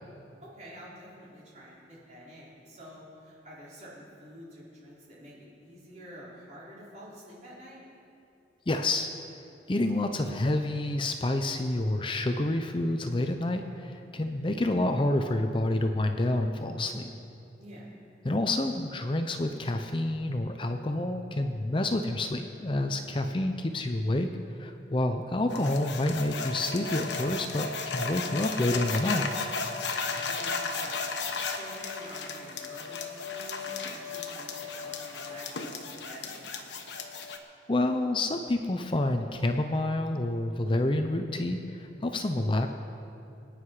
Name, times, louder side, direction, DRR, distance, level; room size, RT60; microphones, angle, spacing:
voice 1, 0.4-5.3 5.6-7.8 17.6-17.9 30.0-36.4, equal, 40° right, -7 dB, 4.6 m, -48 dB
voice 2, 8.7-9.1 9.7-17.1 18.2-24.3 24.6-29.3 37.7-42.7, left 1 dB, 30° left, 6 dB, 0.6 m, -28 dB
sound 1, 25.5-37.4, left 4 dB, 80° left, 1.3 m, -35 dB
24.5 x 9.7 x 4.9 m, 2.7 s
head